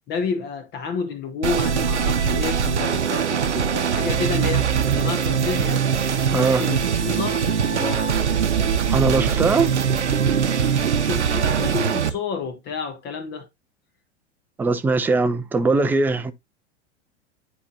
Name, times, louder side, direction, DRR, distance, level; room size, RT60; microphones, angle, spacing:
voice 1, 0.1-5.9 6.3-8.1 11.0-13.5, left 5 dB, 30° left, 0.9 m, -30 dB
sound 1, 1.4-12.1, right 7 dB, 80° right, 0.8 m, -22 dB
voice 2, 6.3-6.6 8.9-9.7 14.6-16.3, right 3 dB, 5° right, 0.4 m, -20 dB
9.6 x 4.3 x 2.6 m
figure-of-eight pair, 90°, 35 cm